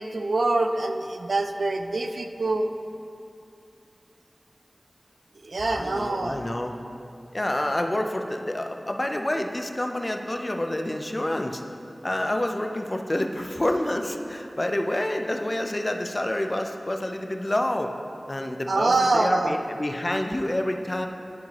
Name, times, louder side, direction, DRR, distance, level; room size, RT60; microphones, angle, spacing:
voice 1, 0.0-2.7 5.4-6.4 18.7-19.6, right 2 dB, 80° right, 6 dB, 0.4 m, -25 dB
voice 2, 5.7-6.7 7.3-11.6 12.0-17.9 18.3-21.1, left 1 dB, 30° left, 4 dB, 0.5 m, -28 dB
11.5 x 4.6 x 2.9 m, 2.6 s
wide cardioid pair, 70°, 0 cm